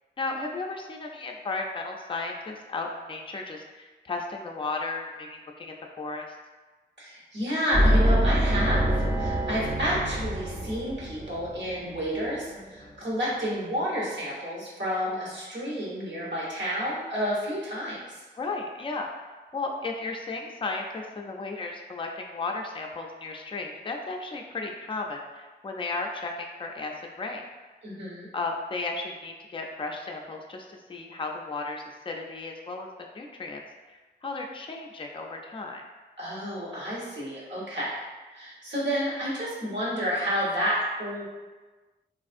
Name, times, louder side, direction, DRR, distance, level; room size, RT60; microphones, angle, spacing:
voice 1, 0.2-6.3 12.6-13.1 18.4-19.1 19.5-26.9 27.2-27.4 28.3-33.6 33.9-35.8, left 3 dB, 25° left, 1 dB, 0.4 m, -34 dB
voice 2, 7.0-8.9 9.2-18.2 27.8-28.3 36.2-38.0 38.3-41.2, equal, 65° right, -6 dB, 1.2 m, -30 dB
sound 1, 7.7-12.5, equal, 20° right, 0.7 m, -25 dB
3.4 x 2.4 x 2.5 m, 1.3 s
wide cardioid pair, 65°, 20 cm